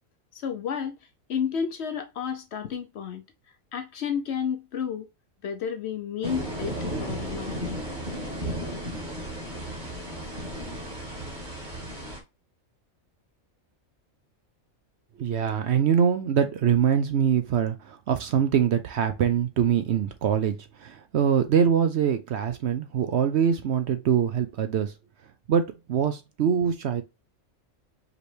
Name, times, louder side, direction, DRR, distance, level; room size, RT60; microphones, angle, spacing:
voice 1, 0.3-1.0 1.3-3.2 3.7-5.1 5.4-7.6, left 7 dB, 60° left, 0.8 m, -31 dB
sound 1, 6.2-12.2, equal, 35° right, 1.7 m, -34 dB
voice 2, 15.2-24.9 25.5-27.0, right 8 dB, 65° right, 0.7 m, -24 dB
5.0 x 3.2 x 3.1 m
omnidirectional pair, 1.4 m